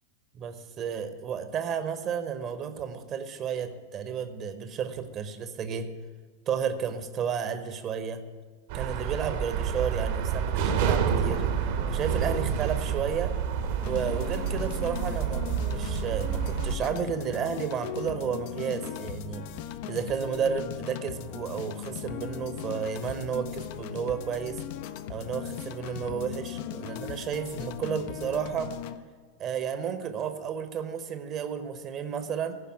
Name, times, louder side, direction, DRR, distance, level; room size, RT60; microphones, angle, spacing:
voice 1, 0.3-5.9 6.5-8.2 8.7-11.4 11.9-13.4 13.9-19.5 19.9-24.6 25.1-28.7 29.4-32.6, right 7 dB, 30° right, 10 dB, 0.9 m, -32 dB
sound 1, 8.7-16.8, right 7 dB, 50° right, 1.1 m, -28 dB
sound 2, 13.8-29.0, left 10 dB, 50° left, 0.5 m, -38 dB
14.5 x 5.4 x 8.7 m, 1.4 s
figure-of-eight pair, 90°, 0 cm